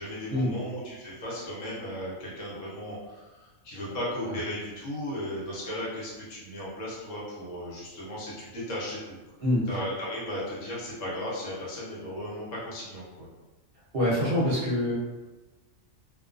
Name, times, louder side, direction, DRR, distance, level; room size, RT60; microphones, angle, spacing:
voice 1, 0.0-9.2 9.7-13.3, left 1 dB, 70° left, -5 dB, 1.2 m, -36 dB
voice 2, 9.4-9.8 13.9-14.9, left 1 dB, 55° right, -6 dB, 0.8 m, -25 dB
2.5 x 2.3 x 2.4 m, 1.1 s
omnidirectional pair, 1.3 m